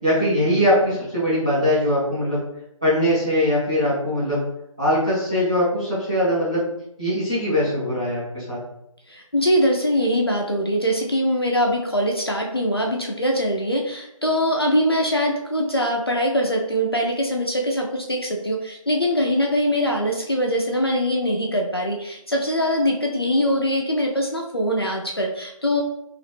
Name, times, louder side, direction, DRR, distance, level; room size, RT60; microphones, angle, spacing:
voice 1, 0.0-2.4 2.8-4.4 4.8-6.7 7.0-8.6, equal, 10° right, -13 dB, 0.7 m, -21 dB
voice 2, 9.1-25.8, equal, 45° left, 0 dB, 0.4 m, -22 dB
2.8 x 2.3 x 3.4 m, 0.79 s
figure-of-eight pair, 165°, 18 cm